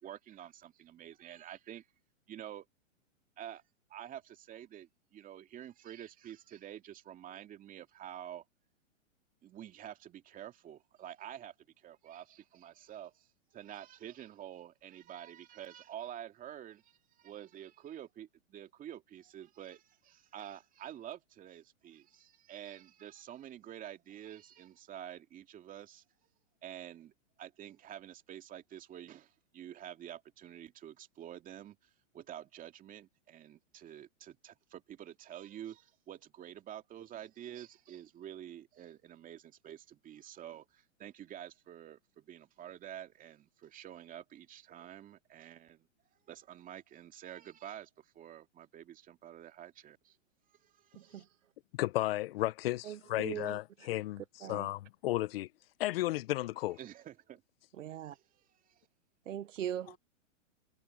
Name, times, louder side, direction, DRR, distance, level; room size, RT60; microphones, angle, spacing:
voice 1, 0.0-1.9 2.3-2.7 3.4-3.6 3.9-8.4 9.4-26.0 26.6-27.1 27.4-50.2 50.5-51.3 56.8-57.4 58.0-58.9, right 11 dB, 20° right, 2.5 m, -49 dB
voice 2, 50.9-51.2 52.8-53.6 54.4-54.7 57.8-58.1 59.3-60.0, right 10 dB, 70° right, 1.4 m, -40 dB
voice 3, 51.7-55.5 55.8-56.8, left 16 dB, 50° left, 0.9 m, -34 dB
hypercardioid pair, 135°, 39 cm